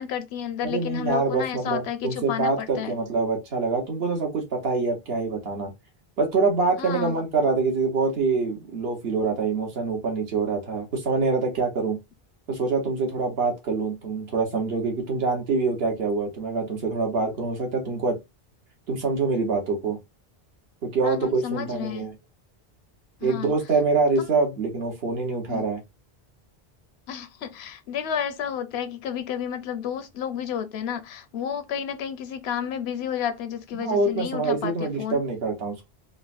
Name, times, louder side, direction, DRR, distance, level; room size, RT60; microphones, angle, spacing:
voice 1, 0.0-2.9 6.8-7.2 21.0-22.0 23.2-23.5 24.2-24.3 25.5-25.6 27.1-35.2, left 8 dB, 90° left, 0.8 m, -31 dB
voice 2, 0.6-5.7 6.2-12.0 12.5-18.2 18.9-20.0 20.8-22.1 23.2-25.8 33.7-35.9, right 4 dB, 75° right, 1.3 m, -25 dB
3.8 x 2.1 x 2.4 m
omnidirectional pair, 1.0 m